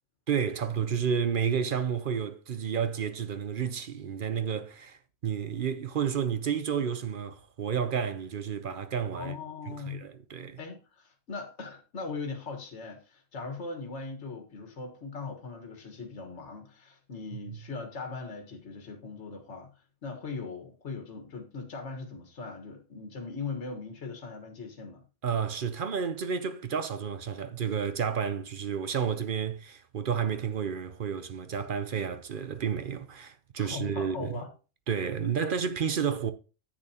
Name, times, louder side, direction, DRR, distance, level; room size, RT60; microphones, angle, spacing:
voice 1, 0.3-9.3 9.7-10.6 25.2-34.3 34.9-36.3, right 7 dB, 50° right, 0.8 m, -31 dB
voice 2, 9.1-10.0 10.6-25.0 33.6-34.5, left 4 dB, 60° left, 1.8 m, -40 dB
10.0 x 8.6 x 2.9 m
omnidirectional pair, 1.3 m